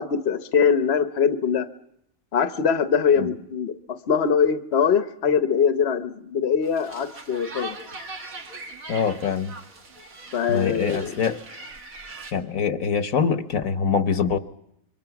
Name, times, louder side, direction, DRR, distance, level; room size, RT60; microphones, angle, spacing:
voice 1, 0.0-1.7 2.3-3.7 4.1-7.8 10.3-11.1, left 7 dB, 50° left, 1.2 m, -22 dB
sound 1, 6.6-12.3, right 3 dB, 85° right, 2.3 m, -40 dB
voice 2, 8.9-9.5 10.5-11.4 12.3-14.4, left 6 dB, 80° left, 1.5 m, -24 dB
26.5 x 23.5 x 6.0 m
omnidirectional pair, 1.4 m